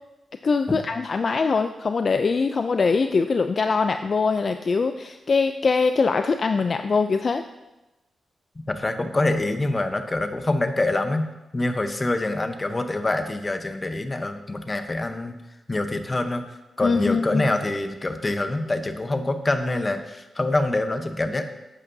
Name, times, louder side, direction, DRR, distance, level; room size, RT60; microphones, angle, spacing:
voice 1, 0.4-7.4 16.8-17.4, left 4 dB, 50° left, 8 dB, 0.3 m, -22 dB
voice 2, 8.7-15.4 15.7-16.4 16.8-21.4, left 2 dB, 25° left, 8 dB, 0.8 m, -25 dB
11.0 x 8.2 x 2.7 m, 1.0 s
cardioid pair, 80°, 0 cm